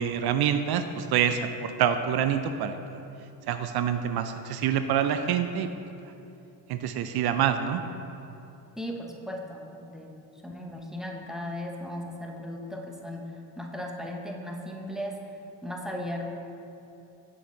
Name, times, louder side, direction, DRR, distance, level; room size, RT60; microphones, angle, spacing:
voice 1, 0.0-2.8 3.5-5.7 6.7-7.8, right 9 dB, 55° right, 8 dB, 0.5 m, -26 dB
voice 2, 8.8-13.3 13.6-15.2 15.6-16.3, left 1 dB, ahead, 1 dB, 0.8 m, -37 dB
7.5 x 5.9 x 3.8 m, 2.8 s
supercardioid pair, 80°, 48 cm